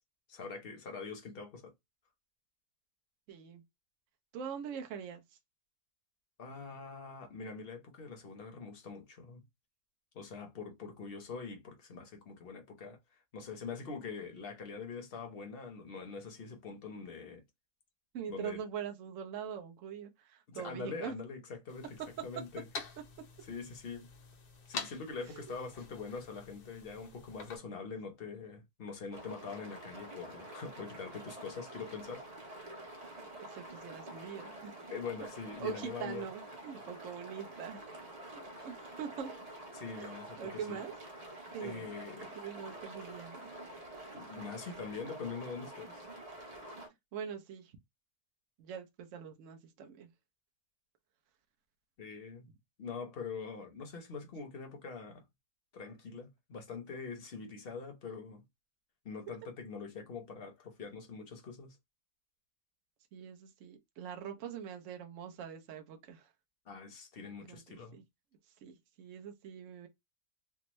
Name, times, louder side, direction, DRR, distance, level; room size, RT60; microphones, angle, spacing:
voice 1, 0.3-1.7 6.4-9.4 10.1-13.0 13.3-17.4 18.3-18.6 20.5-22.7 23.5-24.1 24.7-32.2 34.9-36.3 39.7-40.8 41.6-42.4 44.1-46.1 52.0-52.5 52.8-55.2 55.7-58.4 59.0-61.8 66.7-68.0, left 5 dB, 45° left, 0.8 m, -44 dB
voice 2, 3.3-3.6 4.3-5.2 18.1-21.1 25.2-25.6 33.4-34.7 35.6-37.8 38.3-39.3 39.9-40.9 41.5-41.8 42.3-43.5 47.1-47.7 48.6-50.1 63.1-66.3 67.5-68.0 68.6-69.9, right 8 dB, 60° right, 0.9 m, -43 dB
sound 1, 21.7-27.6, left 4 dB, 70° left, 1.3 m, -47 dB
sound 2, 29.1-46.9, right 1 dB, 35° right, 0.7 m, -48 dB
3.5 x 2.0 x 3.0 m
omnidirectional pair, 1.7 m